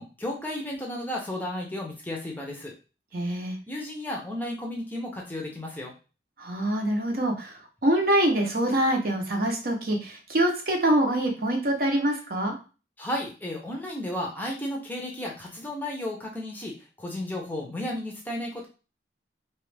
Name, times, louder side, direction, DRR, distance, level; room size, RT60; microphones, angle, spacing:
voice 1, 0.0-2.7 3.7-5.9 13.0-18.7, left 1 dB, 10° left, -1 dB, 0.6 m, -33 dB
voice 2, 3.1-3.6 6.4-12.6, right 1 dB, 55° right, 2 dB, 0.7 m, -25 dB
3.0 x 2.4 x 3.2 m, 0.33 s
head